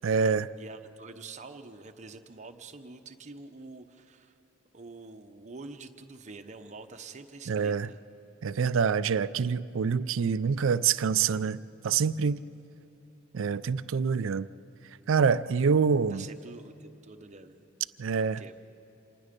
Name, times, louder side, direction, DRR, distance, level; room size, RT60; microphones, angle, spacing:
voice 1, 0.0-0.5 7.5-7.9 8.4-12.4 13.3-14.5 15.1-16.2 18.0-18.4, right 6 dB, 65° right, 16 dB, 0.4 m, -26 dB
voice 2, 0.6-4.4 4.7-8.0 16.1-17.6 18.3-18.6, right 3 dB, 35° right, 6 dB, 0.9 m, -46 dB
26.5 x 19.5 x 5.2 m, 2.9 s
head